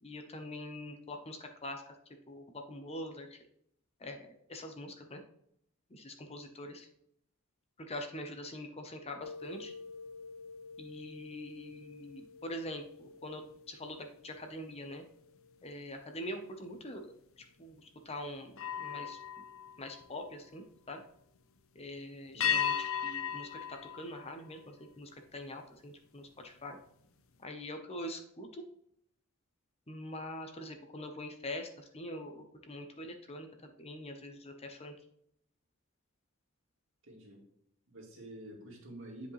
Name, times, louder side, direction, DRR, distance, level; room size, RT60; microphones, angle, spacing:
voice 1, 0.0-1.8 2.3-3.4 4.0-5.2 5.9-6.9 7.8-9.7 10.8-13.4 13.7-15.0 15.6-17.1 17.4-18.5 18.8-19.4 19.8-21.0 21.7-26.8 27.4-28.6 29.9-34.9, left 1 dB, 30° left, 5 dB, 0.8 m, -44 dB
sound 1, 9.2-14.8 15.2-15.5 18.5-20.7 22.4-25.0, left 8 dB, 65° left, 0.6 m, -39 dB
voice 2, 37.0-37.4 37.9-39.3, right 1 dB, 60° right, -1 dB, 2.4 m, -48 dB
9.7 x 5.1 x 3.2 m, 0.70 s
head